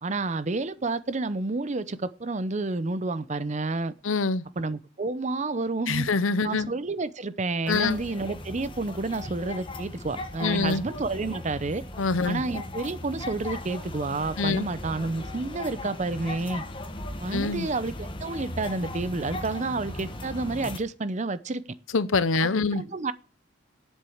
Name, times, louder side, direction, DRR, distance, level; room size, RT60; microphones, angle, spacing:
voice 1, 0.0-3.9 4.6-6.1 6.4-11.8 12.2-16.6 17.2-21.6 22.7-23.1, right 3 dB, 35° right, 0.6 m, -30 dB
voice 2, 4.0-4.4 5.9-6.7 7.7-8.0 10.4-10.8 12.0-12.4 14.4-14.7 17.3-17.7 21.9-22.8, left 4 dB, 90° left, 0.8 m, -25 dB
sound 1, 7.7-20.8, left 1 dB, 25° left, 1.4 m, -38 dB
8.0 x 7.5 x 8.6 m
head